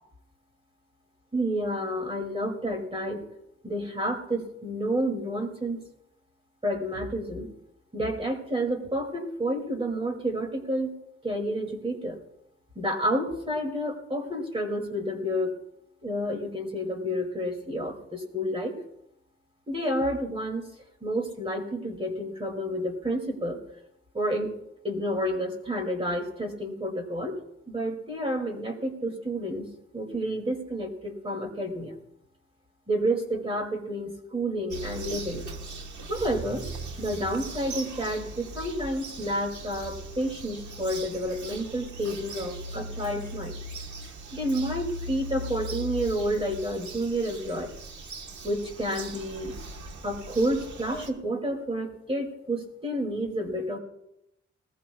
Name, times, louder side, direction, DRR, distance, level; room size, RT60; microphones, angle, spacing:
voice 1, 1.3-3.2 3.6-5.8 6.6-7.5 7.9-10.9 11.2-12.2 12.8-15.6 16.0-18.8 19.7-20.7 21.0-23.6 24.1-24.5 24.8-27.4 27.7-31.9 32.9-35.5 36.1-36.7 37.0-43.6 44.3-47.7 48.4-49.5 50.0-53.8, equal, 20° right, 2 dB, 2.4 m, -30 dB
Bird vocalization bird call bird song, 34.7-51.1, right 1 dB, 80° right, 1.3 m, -39 dB
19.5 x 19.5 x 2.3 m, 0.85 s
wide cardioid pair, 160°, 29 cm